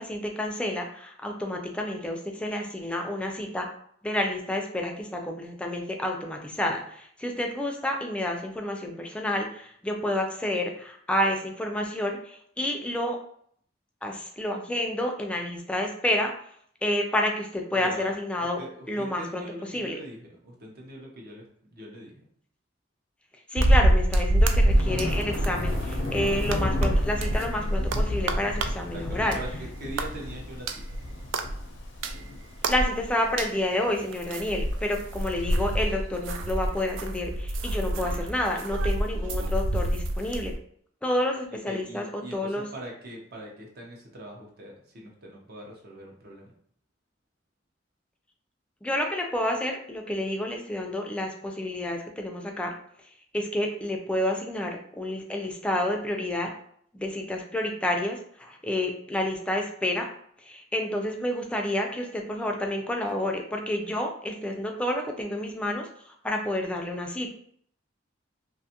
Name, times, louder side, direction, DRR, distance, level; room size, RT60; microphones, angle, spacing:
voice 1, 0.0-3.7 4.0-13.2 14.0-16.3 16.8-18.6 18.9-19.4 19.7-20.0 23.5-29.4 32.7-40.5 41.0-42.0 42.3-42.7 48.8-52.7 53.3-56.5 56.9-60.1 60.4-67.3, left 1 dB, 5° left, 2 dB, 0.4 m, -29 dB
voice 2, 17.7-18.1 18.6-21.5 21.7-22.2 28.9-31.0 41.5-46.5, right 1 dB, 55° right, -1 dB, 0.7 m, -42 dB
sound 1, 23.6-29.6 29.9-33.6 34.1-40.6, right 1 dB, 75° right, 0.3 m, -26 dB
Thunder, 24.7-35.8, left 2 dB, 70° left, 0.5 m, -35 dB
2.5 x 2.3 x 2.8 m, 0.63 s
head